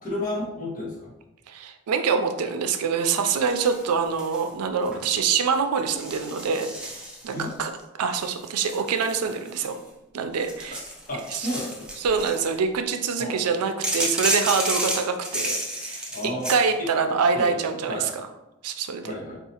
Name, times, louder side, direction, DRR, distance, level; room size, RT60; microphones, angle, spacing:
voice 1, 0.0-1.1 4.9-5.0 7.3-7.5 11.1-11.9 13.2-13.4 16.1-16.5 16.8-16.9 17.3-17.5 17.9-18.1 19.0-19.4, left 1 dB, 40° left, -5 dB, 1.2 m, -32 dB
voice 2, 1.5-7.0 7.2-7.7 8.0-9.8 10.1-10.8 11.3-11.5 12.0-18.1 18.6-19.1, right 5 dB, 90° right, 7 dB, 0.4 m, -25 dB
sound 1, 3.4-4.5 4.8-5.2 5.9-7.5 8.1-9.9 10.3-12.5 13.8-16.6, right 1 dB, 5° right, 0.6 m, -31 dB
4.6 x 2.4 x 2.8 m, 0.94 s
head